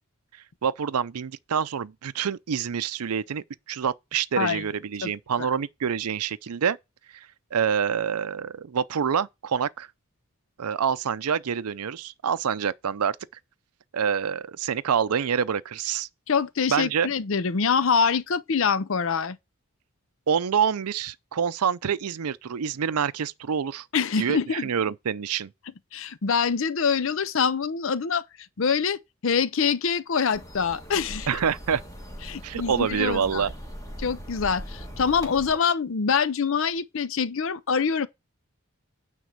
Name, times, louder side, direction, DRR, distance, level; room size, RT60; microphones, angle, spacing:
voice 1, 0.6-6.8 7.5-9.9 10.6-13.2 13.9-16.1 16.7-17.1 20.3-23.8 24.2-25.5 31.3-31.8 32.4-33.5, right 7 dB, 90° right, 0.5 m, -26 dB
voice 2, 16.3-19.4 23.9-24.7 25.9-28.2 28.6-31.4 32.3-33.5 34.0-38.1, left 6 dB, 60° left, 0.6 m, -25 dB
sound 1, 30.3-35.6, equal, 15° left, 1.5 m, -40 dB
9.3 x 3.7 x 6.6 m
head